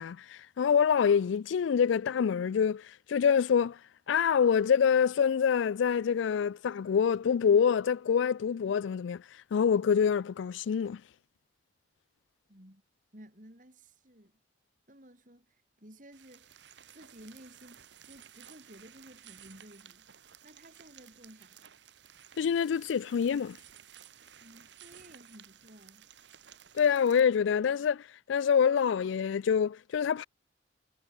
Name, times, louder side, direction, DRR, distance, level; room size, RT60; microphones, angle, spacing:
voice 1, 0.0-3.8 4.1-9.2 9.5-11.0 22.4-23.6 26.7-30.3, left 7 dB, 85° left, 0.3 m, -26 dB
voice 2, 12.5-12.8 13.1-14.4 14.9-16.6 16.9-20.1 20.4-21.7 24.4-26.1, right 1 dB, 45° right, 4.9 m, -54 dB
sound 1, 16.1-27.2, right 9 dB, 70° right, 1.2 m, -55 dB
head